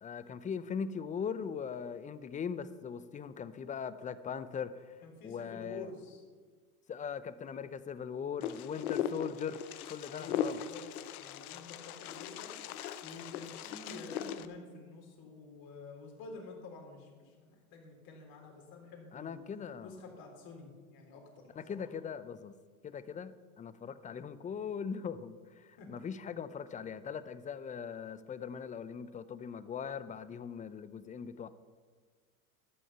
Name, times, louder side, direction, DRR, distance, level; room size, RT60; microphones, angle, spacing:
voice 1, 0.0-5.9 6.9-9.6 9.9-10.6 19.1-20.0 21.6-22.5 22.8-31.5, left 7 dB, 20° left, 15 dB, 0.5 m, -40 dB
voice 2, 5.0-6.2 9.0-9.2 10.1-10.8 11.2-12.5 13.0-19.4 19.8-21.8 25.8-25.9, left 3 dB, 55° left, 1 dB, 3.8 m, -49 dB
Wind, 8.4-14.5, left 9 dB, 80° left, 0.8 m, -39 dB
13.5 x 6.3 x 6.8 m, 1.5 s
hypercardioid pair, 95°, 43 cm